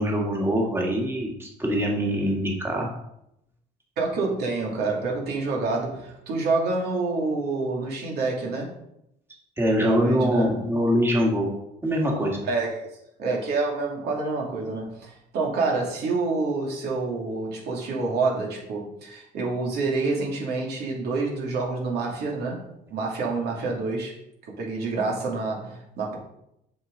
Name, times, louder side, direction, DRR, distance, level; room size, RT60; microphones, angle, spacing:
voice 1, 0.0-2.9 9.6-11.5 11.8-12.4, equal, 15° right, -1 dB, 1.9 m, -23 dB
voice 2, 4.0-8.7 9.8-10.6 12.4-12.9 13.2-22.6 22.9-24.1 24.5-26.2, right 3 dB, 70° right, -2 dB, 2.5 m, -27 dB
7.1 x 6.1 x 3.9 m, 0.81 s
cardioid pair, 110°, 17 cm